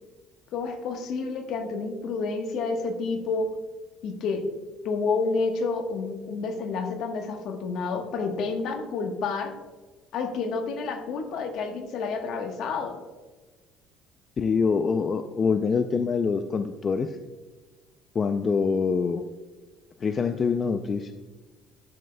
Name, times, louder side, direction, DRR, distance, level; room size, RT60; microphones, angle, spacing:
voice 1, 0.5-3.5 4.0-4.5 4.8-9.5 10.1-13.0, left 4 dB, 60° left, 5 dB, 1.1 m, -29 dB
voice 2, 14.4-17.1 18.2-19.2 20.0-21.1, left 5 dB, 30° left, 8 dB, 0.4 m, -25 dB
11.0 x 7.7 x 2.2 m, 1.3 s
cardioid pair, 125°, 0 cm